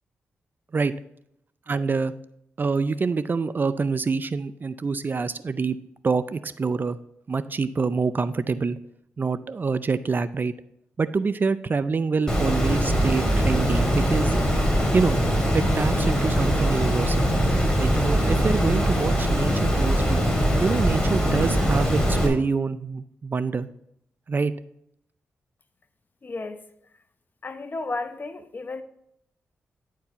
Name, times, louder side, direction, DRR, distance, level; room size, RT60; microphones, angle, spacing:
voice 1, 1.7-2.1 2.6-5.8 6.0-7.0 7.3-8.8 9.2-10.5 11.0-14.4 14.9-15.2 15.5-17.3 17.8-20.2 20.6-23.7 24.3-24.5, right 4 dB, 40° right, 0.5 m, -26 dB
Water, 12.3-22.3, equal, 15° left, 2.8 m, -22 dB
voice 2, 26.2-26.6 27.4-28.8, left 3 dB, 40° left, 0.8 m, -33 dB
10.5 x 4.7 x 4.0 m
cardioid pair, 55°, 5 cm